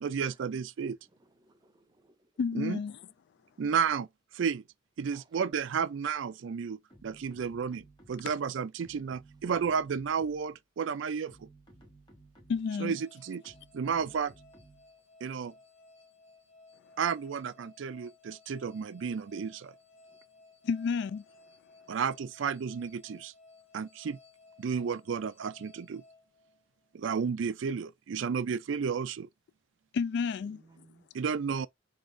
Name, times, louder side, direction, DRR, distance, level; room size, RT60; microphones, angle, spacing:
voice 1, 0.0-1.0 2.5-2.8 3.6-4.1 4.3-4.6 5.0-11.4 12.8-14.3 15.2-15.5 17.0-19.7 21.9-23.3 23.7-24.2 24.6-26.0 26.9-29.3 31.1-31.7, right 6 dB, 75° right, 0.4 m, -32 dB
voice 2, 1.2-2.3 5.1-5.3 20.1-20.2 30.4-31.1, right 2 dB, 20° right, 0.6 m, -62 dB
voice 3, 2.4-3.0 12.5-13.0 20.6-21.2 29.9-30.6, left 5 dB, 60° left, 0.3 m, -30 dB
sound 1, 6.9-8.4 8.8-10.6 11.1-12.8 13.4-15.0, right 2 dB, 25° left, 1.3 m, -57 dB
sound 2, 12.6-27.0, left 3 dB, 80° left, 1.3 m, -59 dB
3.8 x 2.4 x 3.3 m
head